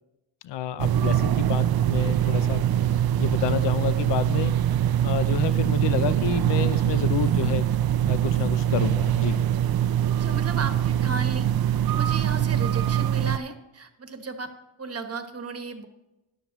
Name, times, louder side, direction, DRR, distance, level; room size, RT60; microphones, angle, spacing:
voice 1, 0.4-2.6 3.2-4.5 5.0-7.7 8.1-9.4, left 10 dB, 70° left, 14 dB, 0.6 m, -29 dB
sound 1, 0.8-13.4, right 11 dB, 55° right, 0.5 m, -23 dB
sound 2, 5.0-5.3 6.2-6.6 7.7-8.1 9.1-9.5 10.8-11.2 12.8-13.2, right 6 dB, 80° right, 1.0 m, -42 dB
voice 2, 10.2-11.5 11.9-14.5 14.8-15.9, right 4 dB, 35° right, 7 dB, 1.2 m, -34 dB
13.0 x 11.0 x 3.1 m, 0.97 s
cardioid pair, 105°, 44 cm